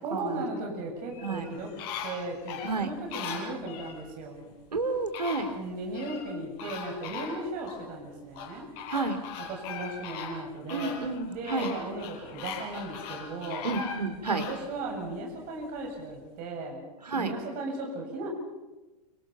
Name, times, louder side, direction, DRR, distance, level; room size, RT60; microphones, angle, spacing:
voice 1, 0.0-1.7 2.0-4.6 5.5-8.7 9.4-11.0 11.3-13.7 14.2-16.8 17.2-18.3, right 2 dB, 45° right, 1 dB, 7.7 m, -36 dB
sound 1, 1.1-4.0 4.8-4.9 5.1-6.3 6.6-7.8 8.3-14.6 15.1-15.2, left 6 dB, 50° left, 5.9 m, -39 dB
voice 2, 4.7-5.5 8.9-9.2 10.7-11.7 13.6-14.4 17.1-17.3, right 3 dB, 85° right, 8 dB, 3.4 m, -30 dB
28.5 x 26.5 x 5.9 m, 1.1 s
figure-of-eight pair, 95°, 20 cm